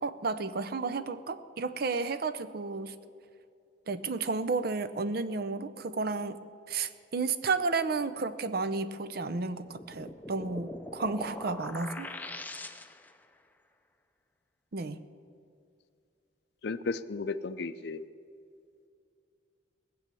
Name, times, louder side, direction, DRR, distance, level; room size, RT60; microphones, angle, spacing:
voice 1, 0.0-2.9 3.9-6.4 6.7-12.1 14.7-15.0, right 4 dB, 55° right, 11 dB, 0.6 m, -32 dB
sound 1, 9.6-13.2, left 2 dB, 10° left, 0.5 m, -42 dB
voice 2, 16.6-18.1, left 3 dB, 60° left, 13 dB, 0.5 m, -34 dB
18.5 x 7.7 x 6.9 m, 2.4 s
head